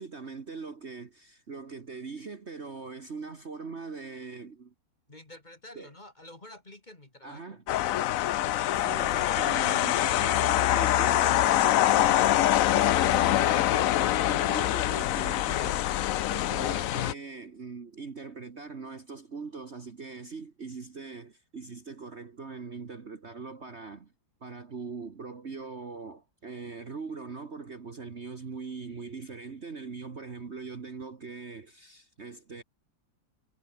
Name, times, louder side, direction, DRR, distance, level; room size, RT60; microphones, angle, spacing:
voice 1, 0.0-4.7 5.7-5.9 7.2-7.6 8.7-24.1 24.4-32.6, right 4 dB, 40° right, 1.6 m, -41 dB
voice 2, 5.1-7.6, left 1 dB, 25° left, 2.3 m, -49 dB
sound 1, 7.7-17.1, left 13 dB, 75° left, 0.7 m, -24 dB
omnidirectional pair, 2.1 m